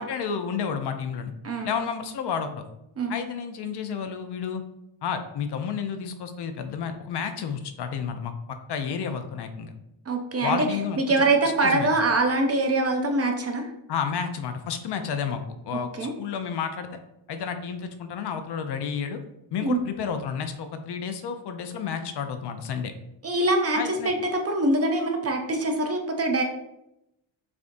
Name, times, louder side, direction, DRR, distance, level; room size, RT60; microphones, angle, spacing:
voice 1, 0.0-1.3 1.6-2.6 3.1-4.6 5.0-9.7 10.4-11.9 13.9-16.9 17.3-19.2 19.5-22.9 23.7-24.1, left 6 dB, 60° left, 7 dB, 0.5 m, -31 dB
voice 2, 10.1-10.6 11.0-13.7 16.0-16.1 19.6-19.8 23.2-23.8 24.0-26.4, right 2 dB, 35° right, 3 dB, 0.4 m, -24 dB
6.7 x 2.6 x 2.5 m, 0.86 s
wide cardioid pair, 160°, 47 cm